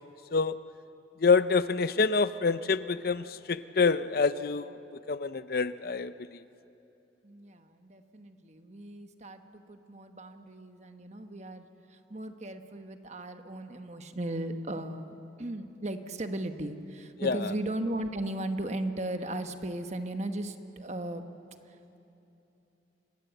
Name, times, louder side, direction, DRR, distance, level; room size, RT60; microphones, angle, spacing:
voice 1, 1.2-4.7 5.1-6.3 17.2-17.5, left 4 dB, 55° left, 14 dB, 0.5 m, -26 dB
voice 2, 7.2-21.2 21.7-22.0, right 1 dB, 40° right, 7 dB, 1.2 m, -37 dB
27.5 x 19.5 x 8.1 m, 2.9 s
head